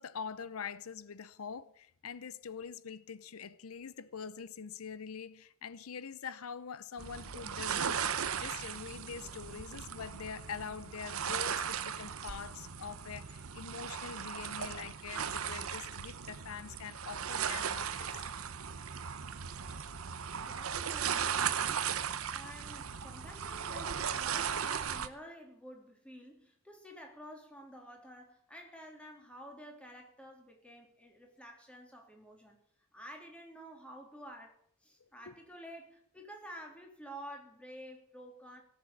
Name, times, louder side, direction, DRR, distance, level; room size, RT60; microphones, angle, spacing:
voice 1, 0.0-18.2 35.3-35.4, left 6 dB, 85° left, 0.6 m, -44 dB
sound 1, 7.0-25.1, right 7 dB, 80° right, 0.9 m, -37 dB
voice 2, 20.3-32.6 32.9-38.6, equal, 5° left, 3.2 m, -51 dB
17.5 x 7.5 x 8.6 m
head